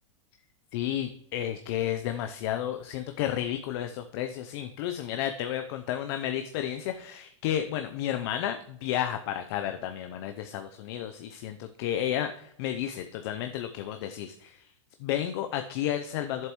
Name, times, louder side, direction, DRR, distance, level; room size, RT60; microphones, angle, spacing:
voice 1, 0.7-14.7 15.0-16.5, left 11 dB, 55° left, 7 dB, 0.6 m, -32 dB
11.0 x 7.5 x 3.0 m, 0.69 s
hypercardioid pair, 130°, 16 cm